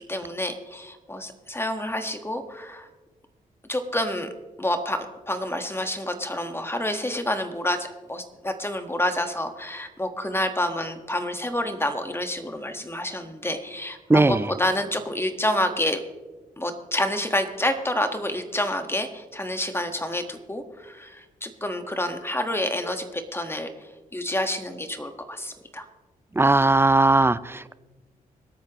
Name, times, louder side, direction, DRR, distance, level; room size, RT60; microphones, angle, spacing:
voice 1, 0.1-2.9 3.7-4.3 4.6-16.0 16.6-23.7 24.1-25.8, left 1 dB, 15° left, 7 dB, 1.5 m, -28 dB
voice 2, 14.1-14.4 26.4-27.7, right 2 dB, 15° right, 17 dB, 0.5 m, -18 dB
25.0 x 8.5 x 3.1 m, 1.2 s
cardioid pair, 60°, 15 cm